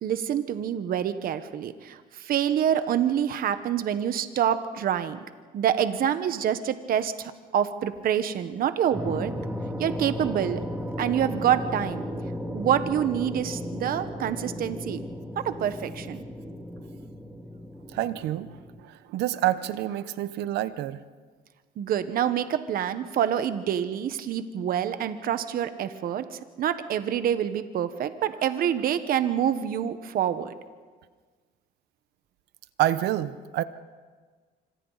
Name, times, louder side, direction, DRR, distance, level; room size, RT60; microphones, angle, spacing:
voice 1, 0.0-5.2 5.5-9.3 9.8-10.6 11.0-12.0 12.5-15.0 15.3-16.2 21.8-30.5, right 9 dB, 60° right, 11 dB, 1.3 m, -27 dB
sound 1, 8.9-18.8, left 1 dB, 10° right, 2.4 m, -35 dB
voice 2, 17.9-21.0 32.8-33.6, right 13 dB, 80° right, 14 dB, 1.0 m, -28 dB
26.0 x 25.5 x 4.1 m, 1.5 s
cardioid pair, 110°, 17 cm